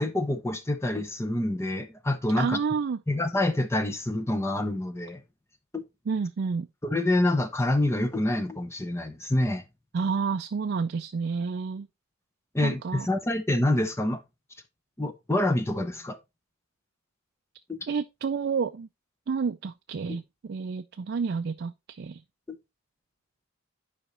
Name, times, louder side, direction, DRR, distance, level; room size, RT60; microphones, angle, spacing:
voice 1, 0.0-2.6 3.1-5.2 5.7-5.8 6.8-9.6 12.5-14.2 15.0-16.2 17.7-17.8 22.5-22.6, left 1 dB, 15° left, 0.7 m, -27 dB
voice 2, 2.4-3.0 6.1-6.7 9.9-11.9 12.6-13.1 17.9-18.9 19.3-22.2, right 5 dB, 50° right, 0.4 m, -30 dB
10.0 x 5.0 x 3.1 m
head